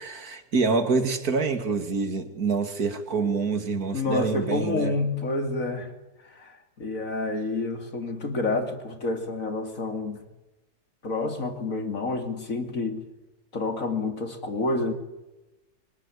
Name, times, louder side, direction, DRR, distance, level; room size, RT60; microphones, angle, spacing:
voice 1, 0.1-4.9, right 4 dB, 60° right, 8 dB, 2.8 m, -26 dB
voice 2, 3.9-5.9 6.2-10.2 11.0-13.0 13.5-14.9, left 3 dB, 50° left, 5 dB, 3.1 m, -29 dB
25.0 x 24.0 x 10.0 m, 1.0 s
omnidirectional pair, 1.8 m